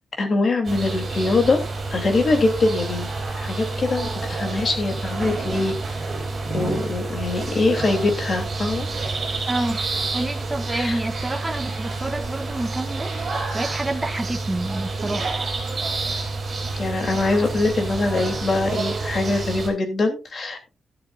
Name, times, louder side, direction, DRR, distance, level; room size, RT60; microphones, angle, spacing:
voice 1, 0.2-1.6 1.9-3.1 3.4-5.7 6.5-8.8 10.7-11.0 16.8-20.7, left 3 dB, 40° left, 3.2 m, -23 dB
sound 1, 0.6-19.7, right 3 dB, 40° right, 6.6 m, -28 dB
voice 2, 9.5-9.8 10.1-15.3, right 2 dB, 15° right, 1.7 m, -28 dB
13.0 x 12.0 x 2.6 m
wide cardioid pair, 150°, 0 cm